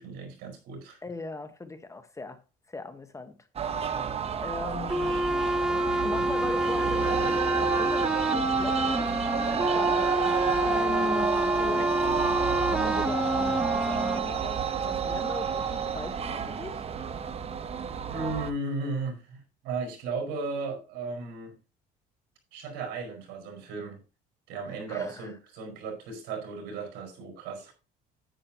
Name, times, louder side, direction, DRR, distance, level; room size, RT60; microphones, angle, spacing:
voice 1, 0.0-1.0 18.1-19.4 19.6-21.5 22.5-24.0 24.5-27.7, right 3 dB, 75° right, 4.9 m, -35 dB
voice 2, 1.0-2.4 2.7-3.4 3.8-5.3 6.0-12.1 12.6-16.8 24.7-25.3, left 3 dB, 15° left, 1.1 m, -39 dB
sound 1, 3.6-18.5, right 7 dB, 35° right, 0.9 m, -30 dB
sound 2, 4.9-14.2, right 1 dB, 5° right, 0.8 m, -27 dB
10.0 x 9.8 x 2.9 m
cardioid pair, 110°, 18 cm